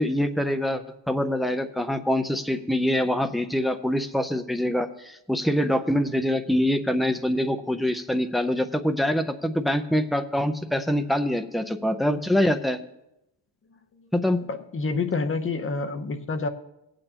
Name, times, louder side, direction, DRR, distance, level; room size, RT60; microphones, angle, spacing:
voice 1, 0.0-12.8 14.1-14.4, left 1 dB, ahead, 7 dB, 0.4 m, -25 dB
voice 2, 14.5-16.5, left 4 dB, 30° left, 8 dB, 0.7 m, -28 dB
18.5 x 8.9 x 2.8 m, 0.86 s
wide cardioid pair, 165°, 44 cm